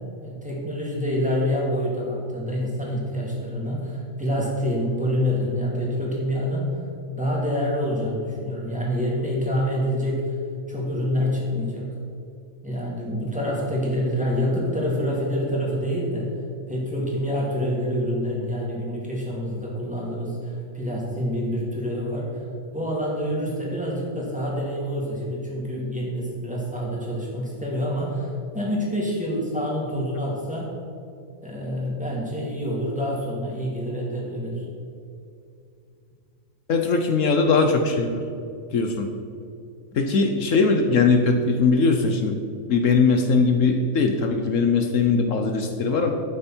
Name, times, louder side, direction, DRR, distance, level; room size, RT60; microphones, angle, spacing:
voice 1, 0.2-6.8 7.1-10.4 10.7-11.9 12.6-16.3 16.7-22.4 22.7-28.3 28.5-30.7 31.4-34.6, equal, 5° right, -5 dB, 2.7 m, -27 dB
voice 2, 36.7-38.2 38.7-39.1 40.0-42.4 42.7-46.1, left 4 dB, 70° left, 5 dB, 1.2 m, -20 dB
12.0 x 8.9 x 4.5 m, 2.5 s
omnidirectional pair, 1.4 m